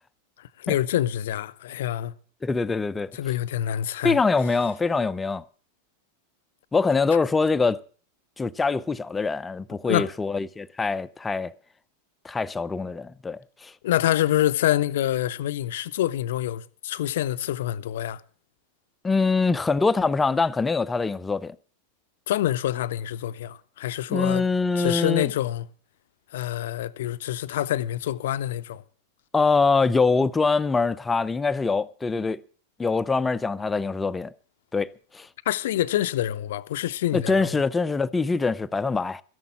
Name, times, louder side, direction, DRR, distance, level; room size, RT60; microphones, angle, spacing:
voice 1, 0.6-2.1 3.1-4.2 9.8-10.1 13.8-18.2 22.3-24.4 24.8-25.7 26.3-28.8 35.5-37.6, left 12 dB, 55° left, 0.6 m, -26 dB
voice 2, 2.4-3.1 4.0-5.4 6.7-7.8 8.4-11.5 12.2-13.7 19.0-21.6 24.1-25.3 29.3-32.4 32.8-34.3 34.7-35.3 37.1-39.2, left 4 dB, 10° left, 0.6 m, -24 dB
13.0 x 11.0 x 7.2 m
figure-of-eight pair, 90°, 0 cm